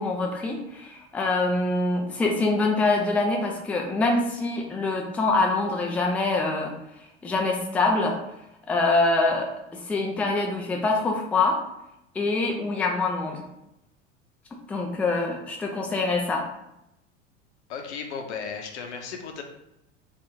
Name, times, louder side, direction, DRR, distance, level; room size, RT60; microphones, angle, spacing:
voice 1, 0.0-6.7 7.2-8.2 8.7-11.6 12.1-13.4 14.7-16.4, left 3 dB, 5° left, 0 dB, 0.4 m, -25 dB
voice 2, 17.7-19.4, left 6 dB, 70° left, 4 dB, 0.7 m, -35 dB
2.9 x 2.5 x 3.3 m, 0.85 s
figure-of-eight pair, 80°, 36 cm